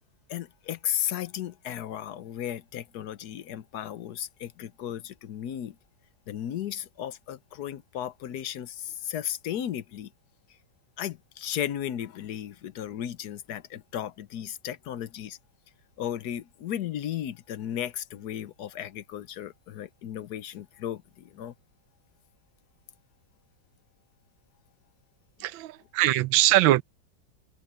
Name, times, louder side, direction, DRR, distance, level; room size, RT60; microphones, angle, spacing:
voice 1, 0.3-5.8 6.3-10.1 11.0-15.4 16.0-21.5, left 10 dB, 65° left, 1.2 m, -35 dB
voice 2, 25.4-26.8, right 15 dB, 90° right, 1.4 m, -22 dB
omnidirectional pair, 2.1 m